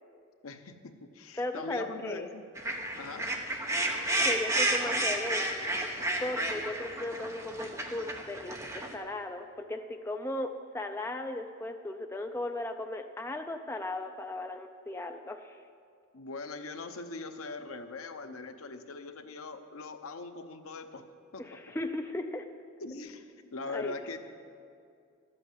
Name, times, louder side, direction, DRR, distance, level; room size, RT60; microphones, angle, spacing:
voice 1, 0.4-2.4 3.0-3.3 16.1-21.0 21.3-21.4 22.8-24.2, left 3 dB, 70° left, 7 dB, 0.8 m, -41 dB
voice 2, 1.4-2.3 4.2-5.4 6.2-15.6 21.4-22.5 23.7-24.0, left 1 dB, 10° left, 5 dB, 0.4 m, -36 dB
sound 1, 2.6-8.9, right 1 dB, 15° right, 0.9 m, -31 dB
12.0 x 7.8 x 7.9 m, 2.4 s
head